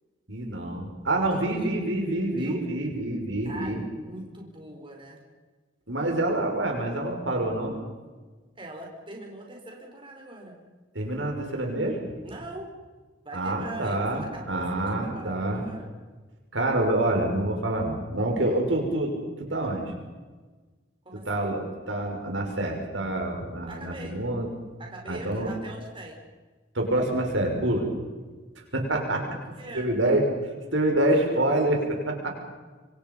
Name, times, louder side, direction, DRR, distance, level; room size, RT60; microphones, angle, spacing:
voice 1, 0.3-3.8 5.9-7.8 10.9-12.0 13.3-15.6 16.5-19.1 19.4-19.9 21.3-21.6 21.9-24.5 25.1-25.5 26.7-27.9 28.7-29.2 29.7-30.2 30.7-32.3, right 1 dB, 75° right, 2 dB, 6.0 m, -26 dB
voice 2, 1.2-1.7 2.4-2.6 3.4-5.2 8.5-10.5 12.2-12.7 13.2-15.9 21.0-21.5 23.7-24.2 24.8-26.2 29.3-29.9, right 1 dB, 25° right, 0 dB, 5.2 m, -41 dB
26.0 x 26.0 x 5.6 m, 1.3 s
head